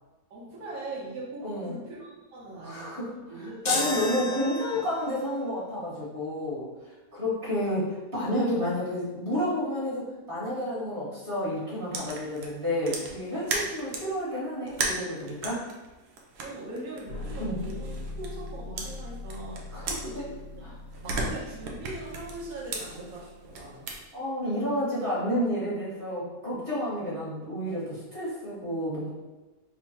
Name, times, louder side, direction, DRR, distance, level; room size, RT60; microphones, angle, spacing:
voice 1, 0.3-3.7 16.4-20.7 21.0-23.9, right 2 dB, 65° right, -5 dB, 1.4 m, -41 dB
voice 2, 1.4-1.7 2.6-3.1 3.3-6.7 7.1-10.0 10.3-15.7 17.4-17.6 19.7-20.2 24.1-29.1, equal, 35° right, -8 dB, 1.6 m, -30 dB
sound 1, 3.6-5.1, left 3 dB, 60° left, 0.9 m, -31 dB
sound 2, 11.9-14.1 14.6-18.5 18.8-20.6 20.9-24.0, right 3 dB, 85° right, 1.2 m, -36 dB
sound 3, 17.1-24.0, left 2 dB, 80° left, 1.3 m, -41 dB
3.6 x 2.2 x 4.2 m, 1.2 s
omnidirectional pair, 1.7 m